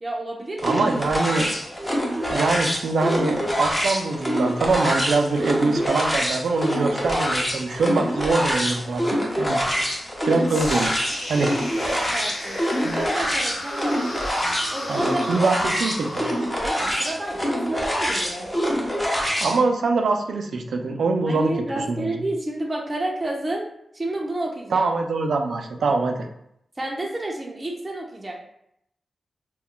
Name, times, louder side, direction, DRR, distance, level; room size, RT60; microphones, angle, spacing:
voice 1, 0.0-0.9 1.3-1.5 6.7-7.0 11.9-14.0 14.7-15.4 16.6-18.5 21.3-23.7 23.9-24.9 26.8-28.3, right 1 dB, 25° right, -1 dB, 0.5 m, -30 dB
sound 1, 0.6-19.6, equal, 15° left, 0.7 m, -25 dB
voice 2, 0.6-1.5 2.3-9.6 10.3-10.9 11.3-11.6 12.8-13.0 14.9-16.3 19.4-22.2 24.7-26.3, right 3 dB, 80° right, 4 dB, 0.3 m, -23 dB
sound 2, 10.5-18.5, left 1 dB, 55° left, 0.7 m, -35 dB
2.3 x 2.1 x 3.7 m, 0.75 s
cardioid pair, 75°, 0 cm